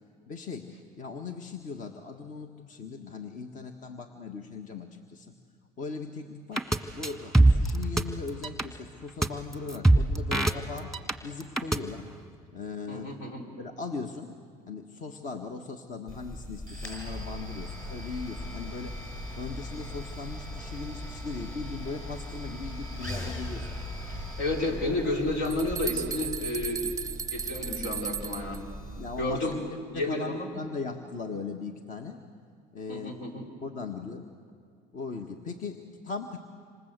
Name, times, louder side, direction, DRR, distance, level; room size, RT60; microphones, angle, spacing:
voice 1, 0.3-0.7 1.0-5.3 5.8-10.9 11.2-12.1 12.5-13.1 13.6-14.4 14.7-23.8 29.0-29.5 29.9-32.2 32.7-33.2 33.6-34.3 34.9-36.4, left 4 dB, 45° left, 5 dB, 1.7 m, -39 dB
sound 1, 6.6-6.8 7.0-8.0 8.3-8.6 9.2-9.3 9.5-11.1 11.4-11.8, right 2 dB, 5° left, 1.6 m, -22 dB
voice 2, 12.9-13.4 24.1-26.8 27.3-28.6 29.2-29.6 29.9-30.5 32.9-33.5, left 2 dB, 75° left, 2 dB, 5.4 m, -31 dB
sound 2, 16.1-29.6, left 1 dB, 20° left, 7.4 m, -39 dB
sound 3, 25.1-25.2 25.5-28.6, right 7 dB, 20° right, 0.6 m, -35 dB
27.0 x 26.5 x 8.2 m, 2.3 s
cardioid pair, 115°, 18 cm